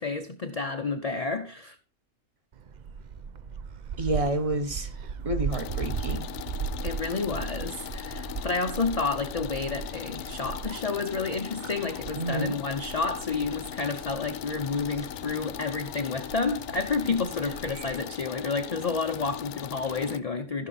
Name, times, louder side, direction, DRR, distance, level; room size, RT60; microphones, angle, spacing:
voice 1, 0.0-1.8 6.8-20.7, left 4 dB, 40° left, 0.5 m, -30 dB
Gull seagull, 2.5-18.0, right 6 dB, 70° right, 0.4 m, -38 dB
voice 2, 4.0-4.9 5.2-6.3 12.2-12.5, right 2 dB, 25° right, 1.0 m, -29 dB
sound 1, 5.5-20.2, left 13 dB, 80° left, 1.1 m, -39 dB
14.5 x 5.5 x 4.0 m
omnidirectional pair, 1.6 m